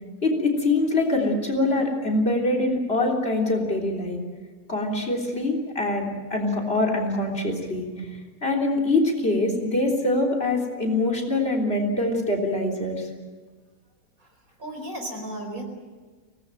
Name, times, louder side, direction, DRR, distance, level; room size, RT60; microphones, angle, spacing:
voice 1, 0.2-4.2 4.7-8.1 8.4-13.1, left 2 dB, 40° left, 4 dB, 3.8 m, -24 dB
voice 2, 14.2-15.6, right 1 dB, 65° right, 4 dB, 5.0 m, -35 dB
24.0 x 19.0 x 9.0 m, 1.4 s
omnidirectional pair, 1.6 m